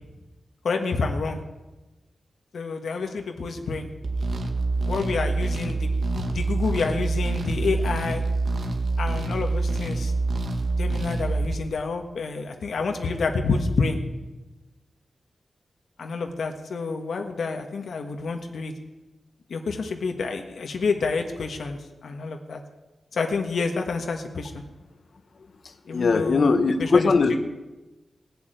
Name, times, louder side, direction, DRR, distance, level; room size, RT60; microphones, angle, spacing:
voice 1, 0.6-1.4 2.5-3.9 4.9-8.2 9.0-10.1 10.8-14.0 16.0-18.7 19.5-22.6 23.1-24.6 25.9-27.1, left 4 dB, 90° left, 4 dB, 1.4 m, -28 dB
sound 1, 4.0-11.6, right 3 dB, 65° right, 1.8 m, -26 dB
voice 2, 25.9-27.4, left 4 dB, 55° left, 9 dB, 1.1 m, -20 dB
18.5 x 7.2 x 9.1 m, 1.1 s
wide cardioid pair, 150°, 0 cm